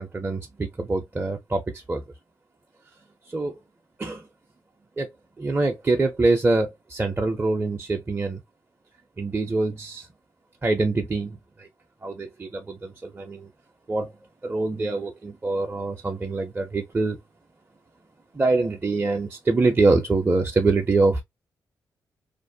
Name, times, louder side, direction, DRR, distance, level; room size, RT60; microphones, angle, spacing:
voice 1, 0.0-2.0 3.3-3.6 4.0-4.3 5.0-5.1 5.4-8.4 9.2-10.1 10.6-11.7 12.0-13.5 13.9-14.1 14.4-17.2 18.3-21.2, right 3 dB, 25° right, 0.5 m, -24 dB
2.5 x 2.1 x 2.6 m
supercardioid pair, 50°, 8 cm